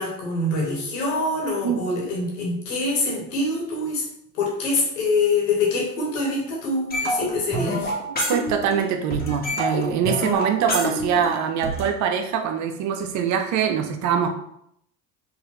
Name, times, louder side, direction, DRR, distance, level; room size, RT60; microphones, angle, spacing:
voice 1, 0.0-4.0 4.3-7.9, left 2 dB, 80° left, -2 dB, 1.5 m, -25 dB
sound 1, 6.9-8.9 9.1-11.9, equal, 25° left, 1.4 m, -26 dB
voice 2, 8.3-14.3, right 7 dB, 50° right, 5 dB, 0.7 m, -23 dB
4.7 x 2.6 x 3.1 m, 0.75 s
hypercardioid pair, 75°, 38 cm